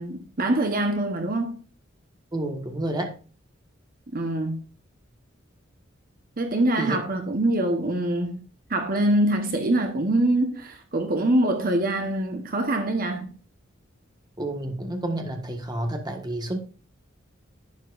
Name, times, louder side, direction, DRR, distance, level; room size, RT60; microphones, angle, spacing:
voice 1, 0.0-1.6 4.1-4.6 6.4-8.4 8.7-13.3, right 1 dB, 45° right, 1.1 m, -24 dB
voice 2, 2.3-3.1 6.8-7.0 14.4-16.6, right 1 dB, 20° right, 1.5 m, -30 dB
11.5 x 9.1 x 2.5 m
head